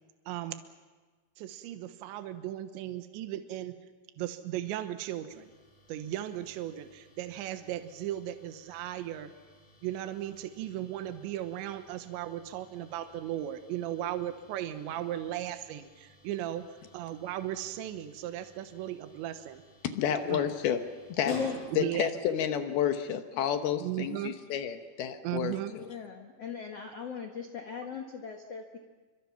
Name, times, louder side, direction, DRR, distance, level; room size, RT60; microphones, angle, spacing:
voice 1, 0.3-0.6 1.4-3.7 4.2-5.5 5.9-9.3 9.8-16.6 16.9-19.6 20.2-20.5 21.7-22.1 23.8-24.4 25.2-25.7, right 12 dB, 75° right, 8 dB, 3.3 m, -36 dB
sound 1, 5.3-22.2, left 1 dB, 30° left, 6.2 m, -54 dB
voice 2, 19.9-20.8 21.2-21.4 21.8-25.6, left 9 dB, 70° left, 8 dB, 2.5 m, -30 dB
voice 3, 21.2-21.6 25.8-28.8, left 6 dB, 85° left, 3 dB, 1.3 m, -37 dB
29.0 x 25.0 x 5.9 m, 1.3 s
omnidirectional pair, 5.5 m